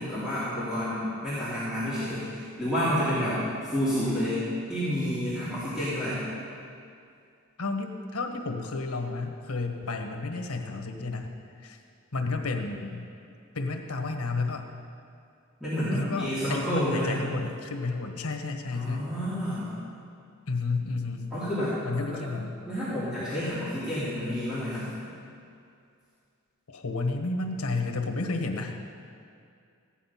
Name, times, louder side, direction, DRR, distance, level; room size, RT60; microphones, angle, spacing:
voice 1, 0.0-3.4 3.6-6.2 15.6-17.1 18.7-19.7 21.3-21.8 22.1-22.2 22.7-24.9, equal, 5° right, -13 dB, 3.1 m, -29 dB
voice 2, 7.6-11.8 12.1-13.0 13.5-14.6 15.9-19.1 20.5-21.3 21.8-22.6 26.7-28.8, left 3 dB, 90° left, 4 dB, 1.3 m, -31 dB
15.5 x 10.0 x 5.8 m, 2.4 s
head